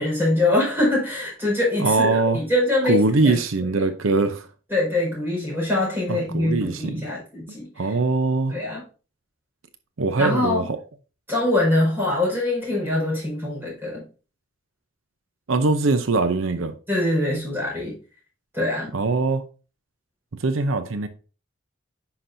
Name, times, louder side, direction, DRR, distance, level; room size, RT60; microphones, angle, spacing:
voice 1, 0.0-3.4 4.7-7.9 8.5-8.8 10.2-10.7 11.3-14.1 16.9-18.0 18.5-18.9, left 1 dB, 10° right, 4.6 m, -23 dB
voice 2, 1.8-2.4 2.8-4.5 6.1-7.0 7.8-8.6 10.0-10.8 15.5-16.7 18.9-19.4 20.4-21.1, right 3 dB, 80° right, 0.7 m, -22 dB
9.9 x 5.9 x 2.6 m
head